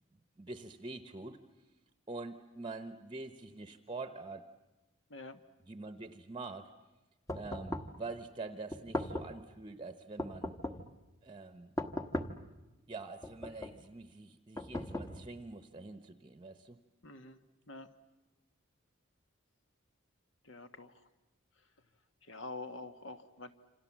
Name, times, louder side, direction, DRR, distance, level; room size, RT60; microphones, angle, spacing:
voice 1, 0.4-1.4 2.1-4.5 5.6-6.7 7.3-10.6 11.2-11.8 12.9-16.8, right 3 dB, 25° right, 9 dB, 0.9 m, -45 dB
sound 1, 7.3-8.0 8.7-9.4 10.2-10.9 11.8-12.5 13.2-13.8 14.6-15.4, left 1 dB, 15° left, 1.1 m, -39 dB
voice 2, 17.0-17.4 17.7-17.9 20.5-20.9 22.3-23.5, left 3 dB, 65° left, 9 dB, 1.6 m, -46 dB
27.5 x 27.0 x 7.4 m, 1.1 s
head